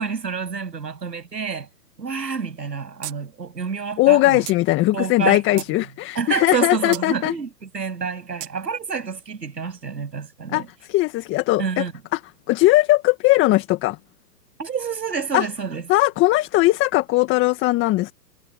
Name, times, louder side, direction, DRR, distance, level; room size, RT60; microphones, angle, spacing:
voice 1, 0.0-1.7 2.0-4.4 4.9-5.6 6.2-10.7 11.6-11.9 14.6-15.8, right 5 dB, 90° right, 7.9 m, -28 dB
sound 1, 3.0-3.2 3.5-3.6 4.5-4.6 5.2-5.8 6.9-7.1 8.4-8.5, right 14 dB, 50° right, 3.0 m, -34 dB
voice 2, 4.0-7.3 10.5-11.9 12.1-12.2 12.5-14.0 15.3-15.5 15.9-18.1, left 18 dB, 25° left, 1.8 m, -19 dB
hypercardioid pair, 130°, 48 cm